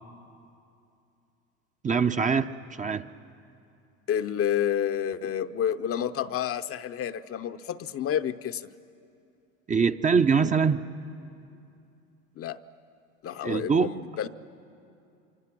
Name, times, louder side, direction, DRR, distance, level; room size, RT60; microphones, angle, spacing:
voice 1, 1.8-3.0 9.7-10.8 13.4-13.9, right 5 dB, 20° right, 8 dB, 0.6 m, -23 dB
voice 2, 4.1-8.7 12.4-12.6 13.2-14.3, left 9 dB, 35° left, 10 dB, 0.7 m, -29 dB
26.0 x 25.0 x 6.1 m, 2.7 s
hypercardioid pair, 75°, 38 cm